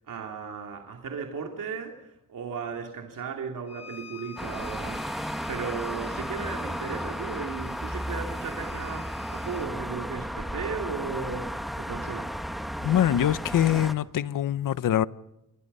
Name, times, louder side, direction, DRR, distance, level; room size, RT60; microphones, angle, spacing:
voice 1, 0.0-12.3, right 5 dB, 85° right, 2.8 m, -36 dB
Bowed string instrument, 3.7-9.7, left 7 dB, 55° left, 3.8 m, -46 dB
sound 1, 4.4-13.9, equal, ahead, 1.3 m, -34 dB
voice 2, 12.8-15.1, left 11 dB, 85° left, 0.8 m, -24 dB
29.0 x 22.5 x 5.5 m
wide cardioid pair, 155°, 32 cm